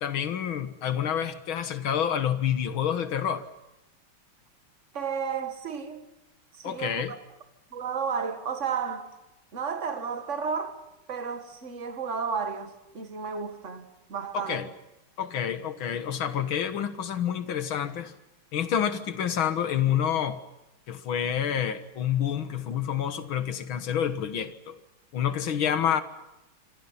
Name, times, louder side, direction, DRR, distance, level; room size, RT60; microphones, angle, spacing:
voice 1, 0.0-3.5 6.6-7.2 14.3-14.7 15.2-18.1 18.5-20.4 20.9-24.8 25.1-26.0, left 9 dB, 75° left, 2.3 m, -28 dB
voice 2, 4.9-6.0 6.5-7.2 7.7-9.1 9.5-10.8 11.1-14.7, right 6 dB, 35° right, 2.1 m, -32 dB
26.0 x 26.0 x 5.8 m
omnidirectional pair, 2.3 m